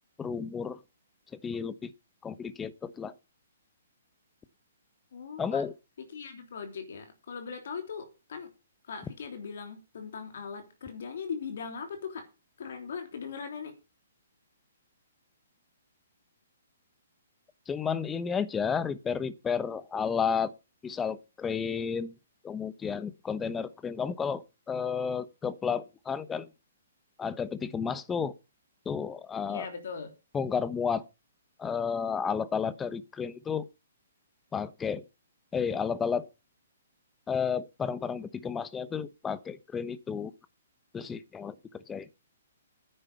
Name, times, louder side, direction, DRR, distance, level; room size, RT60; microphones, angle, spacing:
voice 1, 0.2-0.8 1.4-1.9 2.2-3.1 5.4-5.7 17.7-20.5 20.8-22.1 22.4-26.5 27.2-28.3 28.8-29.7 30.3-31.0 31.6-33.7 34.5-35.0 35.5-36.3 37.3-40.3 40.9-42.1, left 6 dB, 15° left, 1.0 m, -32 dB
voice 2, 5.1-5.6 6.1-8.5 8.9-12.2 12.6-13.7 29.5-30.1, left 6 dB, 65° left, 3.4 m, -39 dB
10.0 x 8.8 x 6.8 m
hypercardioid pair, 130°, 0 cm